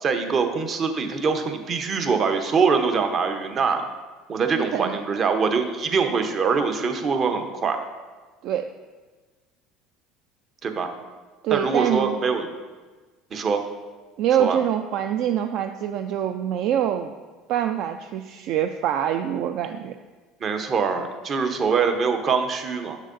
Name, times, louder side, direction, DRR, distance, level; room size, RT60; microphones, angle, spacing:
voice 1, 0.0-3.9 4.3-7.8 10.6-10.9 11.5-12.5 13.3-13.7 14.4-14.6 20.4-23.0, right 5 dB, 40° right, 6 dB, 0.8 m, -23 dB
voice 2, 4.6-5.0 8.4-8.7 11.4-12.2 14.2-17.1 17.5-19.9, right 10 dB, 65° right, 7 dB, 0.3 m, -25 dB
7.5 x 6.3 x 2.6 m, 1.3 s
supercardioid pair, 85°, 0 cm